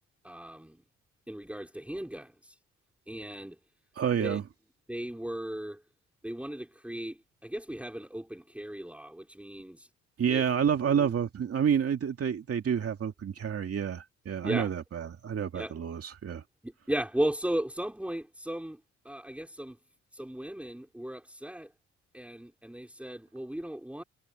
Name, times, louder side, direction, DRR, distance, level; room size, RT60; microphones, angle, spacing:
voice 1, 0.2-0.8 1.3-2.6 3.1-3.6 4.1-4.4 4.9-5.8 6.2-9.9 10.3-10.4 14.4-14.7 15.5-15.7 16.6-18.8 19.1-19.8 20.1-21.7 22.1-24.0, right 1 dB, 5° right, 5.2 m, -36 dB
voice 2, 4.0-4.4 10.2-16.4, right 8 dB, 50° right, 2.3 m, -29 dB
cardioid pair, 90°, 30 cm